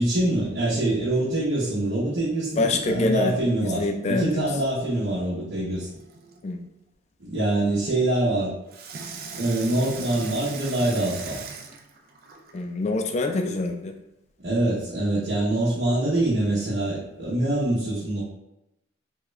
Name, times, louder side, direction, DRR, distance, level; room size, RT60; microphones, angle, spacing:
voice 1, 0.0-5.9 7.2-8.5 9.4-11.4 14.4-18.2, right 1 dB, 70° right, -7 dB, 0.8 m, -24 dB
voice 2, 2.6-4.5 6.4-6.6 12.5-13.9, left 2 dB, 35° left, 4 dB, 0.3 m, -26 dB
Water tap faucet / Sink (filling or washing), 5.7-6.4 8.7-12.6 13.3-13.4, right 5 dB, 50° right, 0.3 m, -39 dB
3.5 x 2.3 x 3.1 m, 0.89 s
head